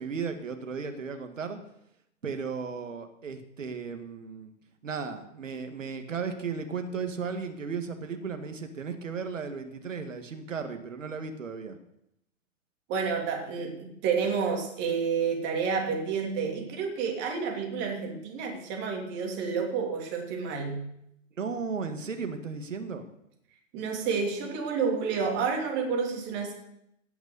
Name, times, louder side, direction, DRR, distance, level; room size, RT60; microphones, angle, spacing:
voice 1, 0.0-1.6 2.2-4.5 4.8-11.8 21.3-23.1, right 5 dB, 70° right, 8 dB, 1.9 m, -35 dB
voice 2, 12.9-20.8 23.7-26.5, right 5 dB, 30° right, 1 dB, 2.8 m, -30 dB
17.0 x 6.0 x 6.8 m, 0.78 s
figure-of-eight pair, 120°, 39 cm